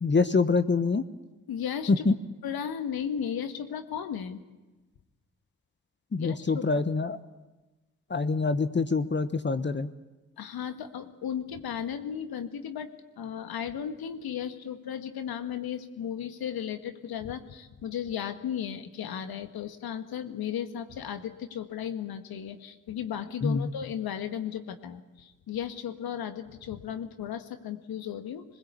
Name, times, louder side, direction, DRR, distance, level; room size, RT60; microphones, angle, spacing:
voice 1, 0.0-1.0 1.9-2.1 6.1-7.2 8.1-9.9 23.4-23.7, left 4 dB, 30° left, 12 dB, 1.2 m, -25 dB
voice 2, 1.5-2.0 2.4-4.4 6.2-6.8 7.1-7.2 10.4-12.9 13.2-28.4, left 9 dB, 65° left, 9 dB, 1.9 m, -35 dB
22.0 x 20.0 x 8.4 m, 1.1 s
hypercardioid pair, 45°, 39 cm